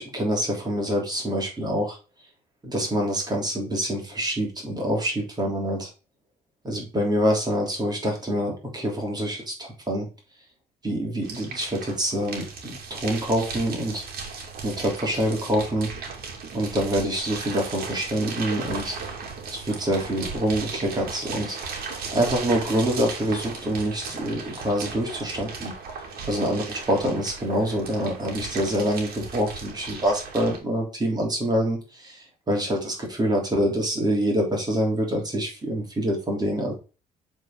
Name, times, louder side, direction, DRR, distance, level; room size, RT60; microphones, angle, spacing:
voice 1, 0.0-2.0 2.6-5.9 6.6-10.1 10.8-14.1 14.6-15.9 16.5-19.0 19.5-21.6 22.1-25.7 26.3-36.7, equal, 25° right, 0 dB, 3.2 m, -26 dB
sound 1, 11.2-30.6, right 5 dB, 60° right, 2.5 m, -36 dB
7.4 x 4.4 x 3.8 m, 0.33 s
cardioid pair, 110°, 17 cm